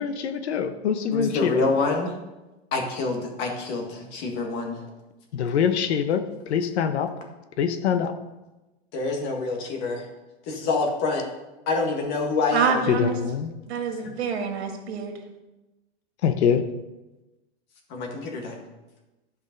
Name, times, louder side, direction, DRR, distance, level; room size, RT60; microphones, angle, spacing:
voice 1, 0.0-1.7 5.3-6.2 6.5-7.1 7.6-8.1 12.9-13.5 16.2-16.6, left 7 dB, 75° left, 9 dB, 1.0 m, -24 dB
voice 2, 1.1-2.1 2.7-4.8 8.9-10.0 10.5-11.2 11.7-12.8 17.9-18.6, left 3 dB, 30° left, 2 dB, 1.7 m, -26 dB
voice 3, 12.5-13.2 13.7-15.1, right 6 dB, 70° right, 3 dB, 2.2 m, -26 dB
11.5 x 5.3 x 5.2 m, 1.1 s
supercardioid pair, 160°, 33 cm